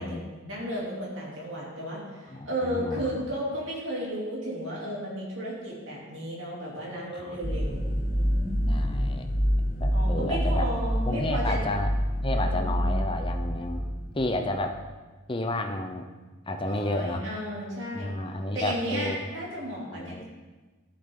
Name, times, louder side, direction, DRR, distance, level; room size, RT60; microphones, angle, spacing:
voice 1, 0.0-8.7 9.9-11.6 12.4-12.9 16.7-18.1 18.5-20.2, equal, 55° right, -5 dB, 3.0 m, -34 dB
voice 2, 2.3-3.2 7.1-7.4 8.7-9.3 9.8-10.6 11.1-11.9 12.2-13.8 14.1-14.8 15.3-16.1 16.5-17.3 17.9-19.3 19.9-20.2, left 1 dB, 25° left, 5 dB, 0.6 m, -31 dB
sound 1, 7.4-14.5, equal, 40° left, 1.2 m, -27 dB
11.5 x 7.7 x 3.8 m, 1.3 s
head